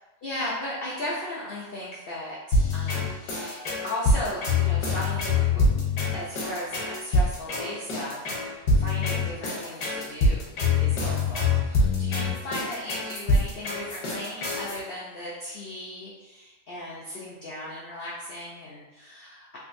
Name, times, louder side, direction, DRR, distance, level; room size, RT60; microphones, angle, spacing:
voice 1, 0.2-5.6 6.1-10.5 10.8-19.6, left 1 dB, 75° left, -5 dB, 0.5 m, -36 dB
sound 1, 2.5-14.8, left 3 dB, 90° left, 1.5 m, -25 dB
3.5 x 2.8 x 2.5 m, 1.1 s
omnidirectional pair, 1.7 m